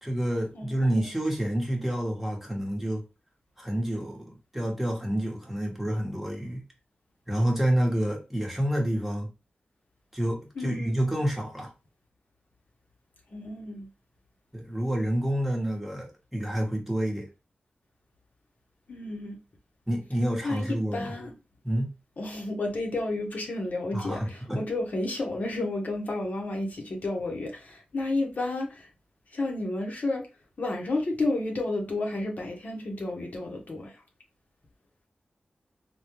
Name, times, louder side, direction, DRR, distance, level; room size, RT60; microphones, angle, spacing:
voice 1, 0.0-3.0 3.6-6.6 7.3-9.3 10.1-11.7 14.5-17.3 19.9-21.1 21.6-21.9 23.9-24.6, right 1 dB, 5° right, 1.0 m, -28 dB
voice 2, 0.5-1.1 10.6-10.9 13.3-13.9 18.9-19.4 20.4-20.6 20.9-21.3 22.2-28.9 29.3-30.2 30.6-33.9, left 2 dB, 60° left, 0.8 m, -31 dB
3.5 x 2.2 x 2.9 m
wide cardioid pair, 105°, 3 cm